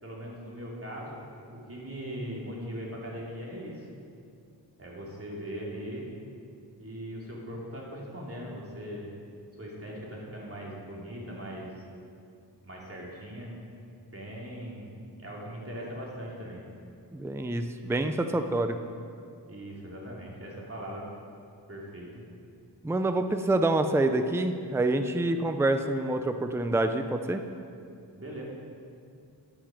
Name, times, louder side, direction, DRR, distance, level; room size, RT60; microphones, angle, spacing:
voice 1, 0.0-3.9 4.8-6.1 6.8-9.2 9.6-11.7 12.6-13.5 13.9-16.6 19.4-21.0 21.7-22.2 28.1-28.4, equal, 30° right, -4 dB, 2.8 m, -40 dB
voice 2, 17.1-18.8 22.8-27.4, right 2 dB, 5° right, 7 dB, 0.5 m, -27 dB
10.5 x 8.9 x 5.0 m, 2.4 s
wide cardioid pair, 60°, 43 cm